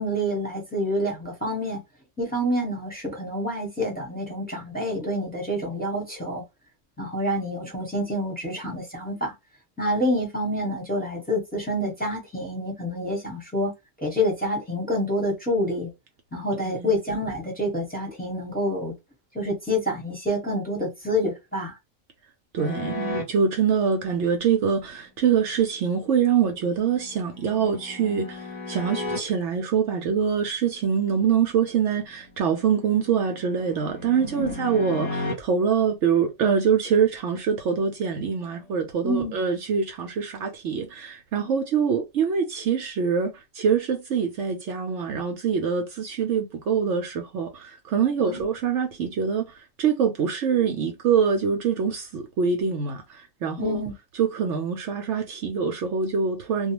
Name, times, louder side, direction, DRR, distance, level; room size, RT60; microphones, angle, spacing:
voice 1, 0.0-1.8 2.2-6.4 7.0-9.3 9.8-13.7 14.0-15.9 16.3-18.9 19.3-21.8 34.2-34.5 39.0-39.3 48.2-48.4 53.6-53.9, equal, 5° left, 1.0 m, -27 dB
voice 2, 22.5-53.8 54.2-56.7, right 6 dB, 70° right, 0.8 m, -24 dB
sound 1, 22.6-23.2 26.6-29.2 32.3-35.3, left 2 dB, 40° left, 0.9 m, -34 dB
2.3 x 2.2 x 2.9 m
omnidirectional pair, 1.4 m